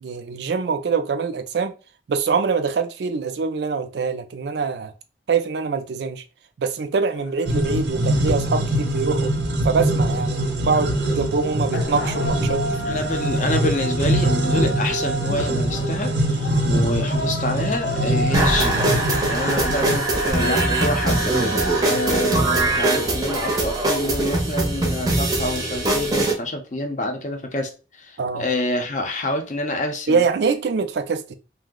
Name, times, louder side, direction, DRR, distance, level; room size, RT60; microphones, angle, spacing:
voice 1, 0.0-1.7 2.1-4.9 5.3-6.2 6.6-9.3 9.6-13.3 21.9-22.0 28.2-28.4 30.1-31.4, right 5 dB, 75° right, 0.4 m, -24 dB
sound 1, 7.1-24.7, equal, 90° left, 0.6 m, -33 dB
sound 2, 7.4-20.0, right 1 dB, 90° right, 0.8 m, -23 dB
voice 2, 12.8-18.9 19.2-21.3 21.8-30.2, left 1 dB, 45° left, 0.6 m, -27 dB
sound 3, 18.3-26.3, right 2 dB, 20° right, 0.6 m, -21 dB
2.6 x 2.1 x 3.6 m
head